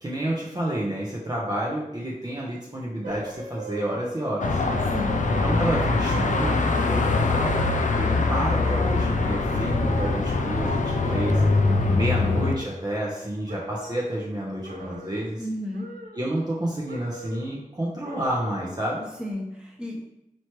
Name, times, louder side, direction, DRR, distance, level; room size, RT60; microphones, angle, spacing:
voice 1, 0.0-4.6 5.2-7.7 7.9-11.4 11.9-15.4 16.1-19.1, right 1 dB, 30° right, -5 dB, 0.7 m, -29 dB
sound 1, 3.0-4.3 4.7-5.8 6.1-8.2 8.6-9.2 9.7-10.8 11.0-13.2 13.5-14.2 14.6-15.4 15.7-16.6 16.9-17.6 18.0-18.8 19.2-19.3, right 2 dB, 85° right, 0.5 m, -40 dB
Car passing by / Traffic noise roadway noise / Engine, 4.4-12.6, left 3 dB, 60° left, 0.4 m, -23 dB
voice 2, 11.6-12.2 15.4-15.9 19.2-20.0, left 1 dB, 5° right, -3 dB, 0.9 m, -33 dB
4.4 x 3.1 x 3.0 m, 0.90 s
wide cardioid pair, 85°, 14 cm